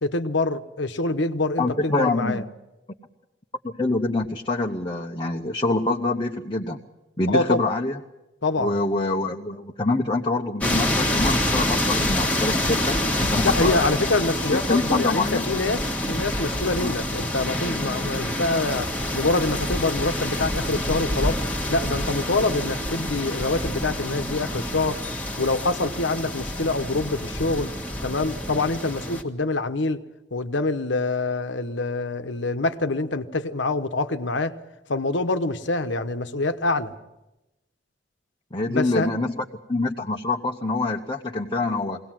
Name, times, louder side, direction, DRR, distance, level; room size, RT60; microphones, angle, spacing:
voice 1, 0.0-2.4 7.3-7.6 8.4-8.7 13.4-21.4 21.7-25.0 25.4-27.7 28.0-30.0 30.3-34.5 34.9-36.9 38.7-39.1, left 2 dB, 65° left, 10 dB, 1.1 m, -25 dB
voice 2, 1.6-2.5 3.6-6.8 7.2-8.0 8.6-14.0 14.4-15.4 16.8-17.0 38.5-42.0, left 2 dB, 25° left, 1 dB, 0.9 m, -25 dB
sound 1, 10.6-29.2, left 1 dB, 5° left, 1.5 m, -27 dB
22.5 x 18.0 x 7.6 m, 0.98 s
head